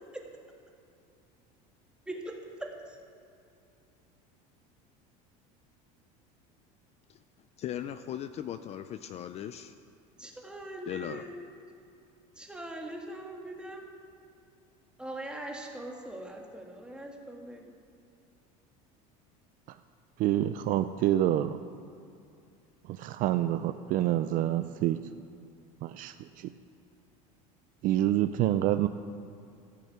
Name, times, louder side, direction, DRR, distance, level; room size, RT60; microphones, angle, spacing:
voice 1, 2.1-3.0 10.2-11.4 12.4-13.9 15.0-17.7, right 1 dB, 5° right, 1 dB, 1.8 m, -41 dB
voice 2, 7.6-9.8 10.9-11.2, left 10 dB, 35° left, 10 dB, 0.4 m, -38 dB
voice 3, 20.2-21.6 22.9-25.0 25.8-26.5 27.8-28.9, right 13 dB, 50° right, 11 dB, 0.5 m, -27 dB
14.5 x 6.5 x 8.8 m, 2.5 s
supercardioid pair, 135°, 18 cm